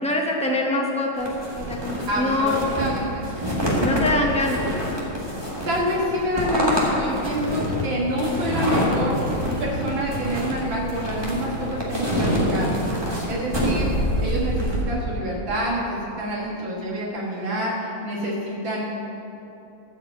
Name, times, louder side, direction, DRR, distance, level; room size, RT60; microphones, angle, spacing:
voice 1, 0.0-2.6 3.8-4.6, left 2 dB, 5° left, -1 dB, 0.4 m, -24 dB
sound 1, 1.2-14.8, equal, 15° right, 1.5 m, -26 dB
voice 2, 2.1-3.1 5.7-9.2 9.6-12.8 13.2-15.8 16.2-18.8, equal, 65° right, -5 dB, 2.4 m, -27 dB
Bass guitar, 9.0-15.2, right 1 dB, 50° right, 3.7 m, -37 dB
13.5 x 5.2 x 8.0 m, 2.9 s
omnidirectional pair, 2.3 m